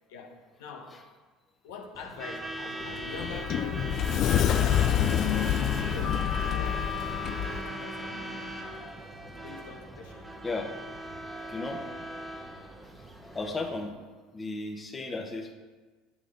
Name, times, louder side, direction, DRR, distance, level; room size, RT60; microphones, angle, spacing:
voice 1, 0.1-1.0 1.6-9.0 9.4-10.3, left 4 dB, 85° left, 1 dB, 1.3 m, -45 dB
Truck / Alarm, 1.9-13.9, right 1 dB, 10° right, 1.0 m, -38 dB
Sliding door, 2.8-7.6, left 10 dB, 55° left, 0.4 m, -27 dB
voice 2, 11.5-11.8 12.8-14.0 14.3-15.5, left 3 dB, 25° left, 2 dB, 1.1 m, -35 dB
9.1 x 6.5 x 3.9 m, 1.3 s
supercardioid pair, 90°, 0 cm